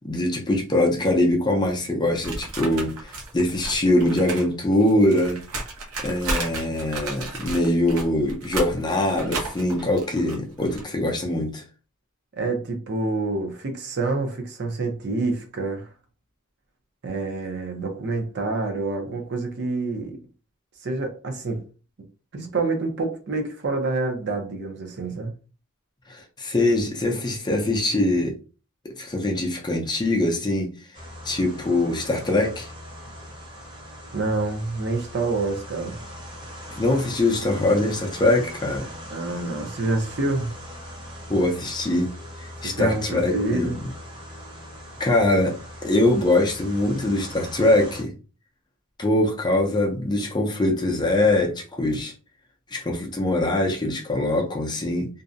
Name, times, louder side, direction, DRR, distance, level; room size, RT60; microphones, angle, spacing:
voice 1, 0.0-5.4 6.0-11.6 26.1-28.3 29.0-30.7 31.2-32.7 36.7-38.9 41.3-42.1 42.4-43.9 45.0-45.5 45.8-48.1 49.0-52.1 52.7-55.1, left 1 dB, 20° left, 0.5 m, -23 dB
sound 1, 2.2-4.5 4.7-10.8, right 2 dB, 90° right, 0.7 m, -33 dB
voice 2, 12.3-15.9 17.0-20.2 20.8-21.6 22.3-25.3 34.1-36.0 39.1-40.5 42.6-43.8, right 3 dB, 50° right, 0.6 m, -27 dB
sound 2, 30.9-48.0, equal, 25° right, 0.8 m, -40 dB
2.6 x 2.1 x 2.5 m
head